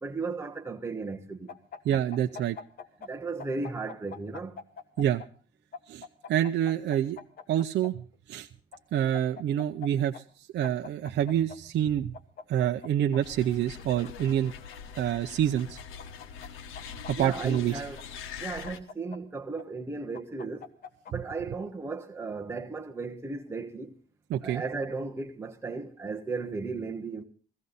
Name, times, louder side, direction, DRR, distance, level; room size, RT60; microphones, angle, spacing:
voice 1, 0.0-1.5 3.0-4.6 17.1-18.0 18.4-20.7 21.1-23.9 24.4-27.2, right 4 dB, 10° right, 1.2 m, -35 dB
sound 1, 1.5-3.1 3.4-5.3 5.7-7.9 8.7-9.9 10.1-10.2 10.6-11.6 12.1-13.2 13.8-14.8 15.6-16.5 16.7-18.0 18.7-19.6 20.1-21.1, left 6 dB, 45° left, 1.3 m, -44 dB
voice 2, 1.8-2.6 5.0-5.2 5.9-7.2 7.5-8.0 8.3-8.5 8.9-10.2 10.5-12.1 12.5-14.5 15.0-15.8 17.1-17.8 24.3-24.6, right 10 dB, 60° right, 0.6 m, -27 dB
sound 2, 13.2-18.8, left 7 dB, 90° left, 1.4 m, -43 dB
17.0 x 15.0 x 4.0 m
cardioid pair, 145°, 20 cm